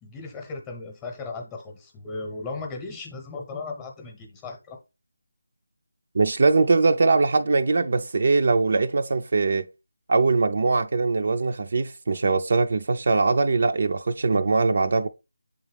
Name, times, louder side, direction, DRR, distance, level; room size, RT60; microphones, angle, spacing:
voice 1, 0.0-4.8, left 3 dB, 10° left, 0.9 m, -36 dB
voice 2, 6.1-9.7 10.1-15.1, right 3 dB, 45° right, 0.5 m, -21 dB
8.0 x 3.6 x 3.3 m
figure-of-eight pair, 170°, 0 cm